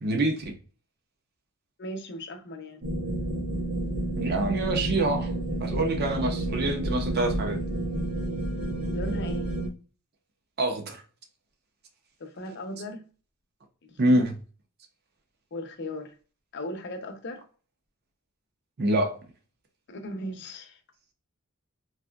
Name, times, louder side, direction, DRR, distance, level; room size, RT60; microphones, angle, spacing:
voice 1, 0.0-0.5 4.2-5.3 5.6-7.6 10.6-11.0 14.0-14.3 18.8-19.2, right 1 dB, 45° right, 0.7 m, -26 dB
voice 2, 1.8-2.8 8.9-9.5 12.2-13.0 13.9-14.2 15.5-16.1 16.5-17.4 19.9-20.8, left 1 dB, 50° left, 0.6 m, -37 dB
sound 1, 2.8-9.7, right 1 dB, 70° right, 1.2 m, -30 dB
4.1 x 2.6 x 2.3 m
head